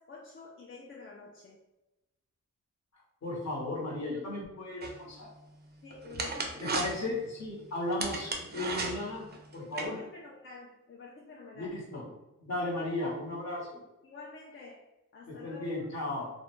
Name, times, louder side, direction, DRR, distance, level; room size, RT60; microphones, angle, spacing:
voice 1, 0.0-1.6 5.8-6.8 9.6-11.8 12.5-12.7 14.0-14.8 15.1-15.9, left 3 dB, 40° left, -2 dB, 0.4 m, -48 dB
voice 2, 3.2-5.3 6.6-9.3 9.5-10.0 11.5-12.1 12.4-13.8 15.3-16.3, left 2 dB, 55° left, -4 dB, 0.9 m, -35 dB
sound 1, 4.8-9.9, right 3 dB, 30° right, 0.4 m, -37 dB
2.3 x 2.1 x 3.0 m, 0.97 s
wide cardioid pair, 85°, 32 cm